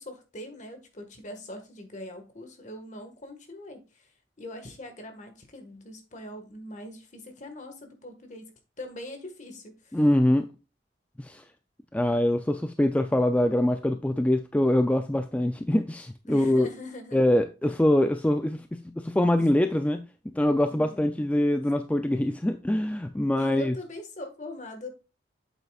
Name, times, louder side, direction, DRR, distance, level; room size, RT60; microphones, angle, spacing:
voice 1, 0.0-4.1 4.4-8.5 8.8-10.0 16.3-17.3 17.6-17.8 20.7-21.1 23.3-24.9, left 1 dB, 45° left, 1.6 m, -42 dB
voice 2, 9.9-10.5 11.2-11.4 11.9-16.7 17.1-23.7, left 1 dB, 10° left, 0.3 m, -24 dB
8.1 x 7.6 x 2.4 m
head